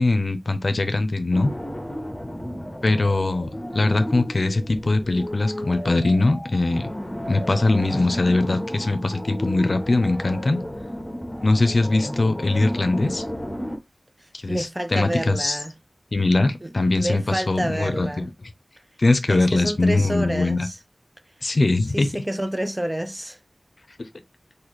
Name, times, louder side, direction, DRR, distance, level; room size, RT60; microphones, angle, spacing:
voice 1, 0.0-1.5 2.8-6.9 7.3-10.6 11.4-13.2 14.3-14.7 14.9-15.6 16.1-18.3 19.0-20.7 21.4-22.1, left 2 dB, 65° left, 0.6 m, -21 dB
sound 1, 1.3-13.8, equal, 20° left, 1.1 m, -33 dB
voice 2, 14.2-15.8 16.6-18.3 19.3-20.8 21.9-23.4, right 1 dB, 15° right, 0.5 m, -29 dB
4.0 x 2.7 x 3.1 m
wide cardioid pair, 65°, 0 cm